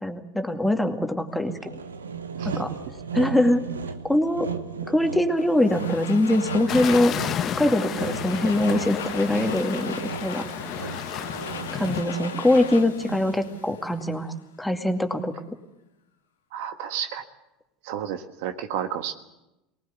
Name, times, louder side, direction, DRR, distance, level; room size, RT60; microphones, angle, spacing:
voice 1, 0.0-1.8 2.4-2.7 3.1-3.7 4.1-4.5 4.9-7.1 7.6-10.5 11.7-15.3, left 1 dB, 5° left, 5 dB, 2.3 m, -23 dB
Sawing, 1.5-13.5, right 6 dB, 90° right, 1.0 m, -36 dB
Domestic sounds home sounds, 5.4-14.3, left 7 dB, 85° left, 1.6 m, -39 dB
sound 1, 6.7-12.0, left 9 dB, 45° left, 1.2 m, -32 dB
voice 2, 16.5-17.2 17.8-19.1, right 9 dB, 65° right, 8 dB, 1.5 m, -31 dB
23.0 x 19.0 x 8.3 m, 0.94 s
hypercardioid pair, 80°, 0 cm